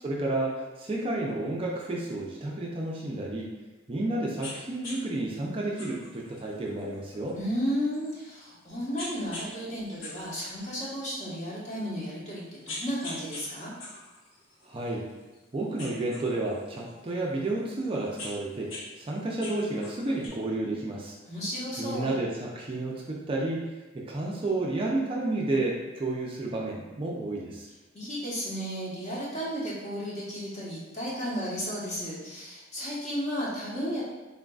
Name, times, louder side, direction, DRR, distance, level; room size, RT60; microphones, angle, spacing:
voice 1, 0.0-3.5 3.9-7.4 14.7-15.1 15.5-18.7 19.0-21.2 21.8-23.6 23.9-27.7, right 2 dB, 25° right, -3 dB, 0.4 m, -31 dB
sound 1, 4.4-4.6 4.8-5.0 5.8-8.5 9.0-9.5 9.8-11.2 11.8-11.9 12.4-13.4 13.8-15.4 15.8-17.1 17.8-18.8 19.1-20.3, left 2 dB, 85° left, 0.9 m, -42 dB
voice 2, 7.3-13.7 21.3-22.2 27.9-34.0, equal, 35° left, -7 dB, 1.1 m, -33 dB
3.9 x 3.8 x 2.3 m, 1.1 s
head